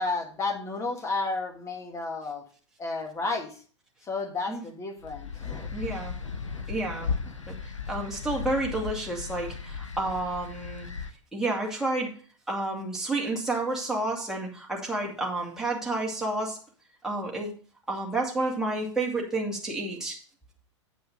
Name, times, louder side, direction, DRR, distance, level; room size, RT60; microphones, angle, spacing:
voice 1, 0.0-2.4 2.8-3.6 4.1-5.9 6.2-6.6 7.0-7.4, left 3 dB, 20° left, 4 dB, 1.8 m, -33 dB
sound 1, 5.0-11.1, left 5 dB, 85° left, 0.9 m, -36 dB
voice 2, 5.7-6.1 6.7-7.1 7.5-7.6 7.9-10.9 11.3-12.1 12.5-16.6 17.0-17.5 17.9-20.2, right 2 dB, 5° right, -2 dB, 2.4 m, -30 dB
9.3 x 5.5 x 5.2 m, 0.41 s
figure-of-eight pair, 100°, 16 cm